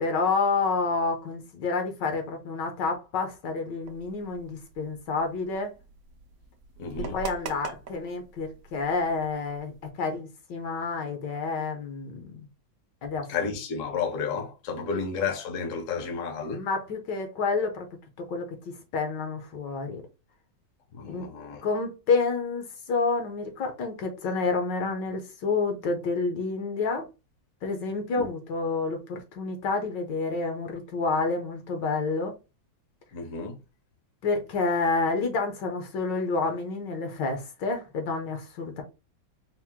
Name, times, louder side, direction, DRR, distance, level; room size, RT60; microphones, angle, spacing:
voice 1, 0.0-5.7 7.1-12.3 13.0-13.3 14.9-15.0 16.5-17.9 18.2-20.0 21.0-21.3 21.6-27.1 27.6-32.3 34.2-38.8, left 4 dB, 70° left, 1.4 m, -29 dB
sound 1, 3.8-9.9, right 5 dB, 70° right, 0.8 m, -43 dB
voice 2, 6.8-7.2 13.3-16.6 20.9-21.6 28.2-28.3 33.1-33.6, left 5 dB, 55° left, 1.0 m, -32 dB
4.4 x 2.1 x 3.5 m
omnidirectional pair, 2.1 m